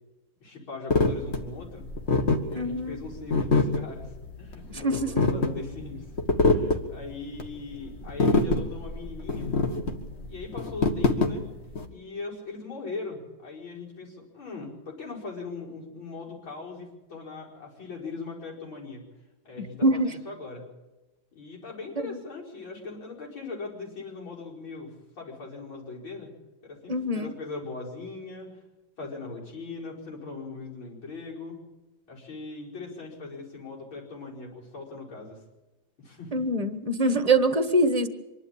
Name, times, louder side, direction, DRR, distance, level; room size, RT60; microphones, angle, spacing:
voice 1, 0.4-1.9 2.5-6.0 6.4-9.5 10.3-11.5 11.9-19.0 19.5-20.6 21.3-26.3 26.6-28.6 29.0-31.6 32.1-35.4 36.0-36.5 37.0-37.2, left 3 dB, 80° left, -3 dB, 5.7 m, -40 dB
sound 1, 0.9-11.9, left 3 dB, 35° left, 1.8 m, -25 dB
voice 2, 2.5-3.0 4.7-5.1 19.8-20.1 22.0-22.2 26.9-27.3 36.3-38.1, right 1 dB, 25° right, 10 dB, 1.0 m, -24 dB
25.5 x 11.5 x 8.8 m, 1.1 s
omnidirectional pair, 2.2 m